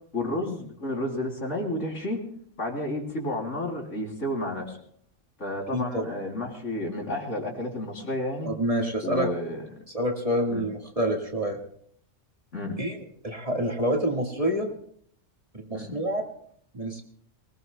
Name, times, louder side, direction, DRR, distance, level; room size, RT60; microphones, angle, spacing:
voice 1, 0.1-2.2 2.6-4.8 5.4-8.5 9.0-9.6 10.5-10.6 12.5-12.8 15.7-15.9, left 1 dB, 70° left, 0 dB, 3.4 m, -31 dB
voice 2, 5.7-6.0 8.5-9.3 9.9-11.6 12.8-14.7 15.7-16.3 16.7-17.0, right 1 dB, 30° right, 1 dB, 1.8 m, -27 dB
23.5 x 19.0 x 2.2 m, 0.65 s
omnidirectional pair, 1.3 m